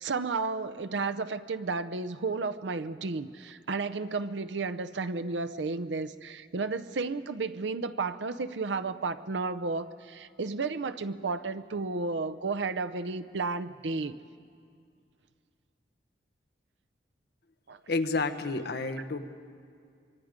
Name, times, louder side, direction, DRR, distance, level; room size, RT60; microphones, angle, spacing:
voice 1, 0.0-14.1 17.7-17.8, right 4 dB, 85° right, 12 dB, 0.7 m, -32 dB
voice 2, 17.9-19.2, left 3 dB, 60° left, 9 dB, 1.0 m, -30 dB
25.0 x 24.0 x 5.2 m, 2.3 s
head